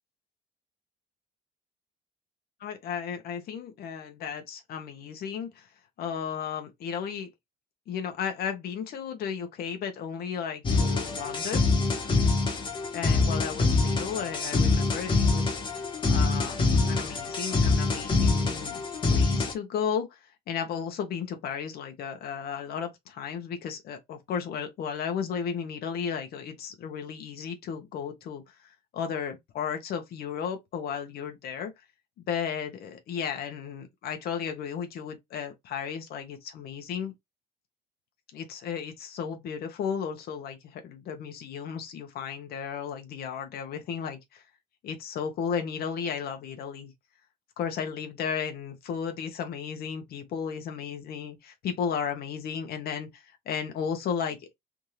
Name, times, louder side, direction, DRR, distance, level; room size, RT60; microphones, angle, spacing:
voice 1, 2.6-5.7 6.0-7.3 7.9-11.7 12.9-15.6 16.1-31.7 32.2-37.1 38.3-44.4 44.8-46.9 47.6-54.5, left 7 dB, 65° left, 1.1 m, -34 dB
sound 1, 10.6-19.5, left 3 dB, 30° left, 1.3 m, -25 dB
3.6 x 2.6 x 3.2 m
cardioid pair, 110°, 17 cm